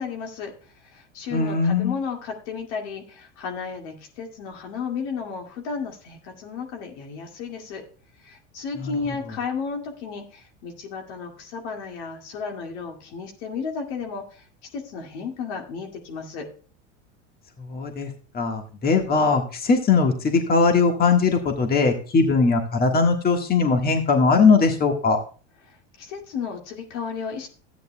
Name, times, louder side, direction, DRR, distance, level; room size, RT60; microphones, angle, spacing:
voice 1, 0.0-7.8 8.2-14.4 14.7-16.5 25.7-27.5, left 5 dB, 70° left, 3 dB, 2.1 m, -33 dB
voice 2, 1.3-2.0 8.8-8.9 17.6-25.2, left 4 dB, 25° left, 4 dB, 1.5 m, -20 dB
13.5 x 9.3 x 2.2 m, 0.38 s
hypercardioid pair, 105°, 37 cm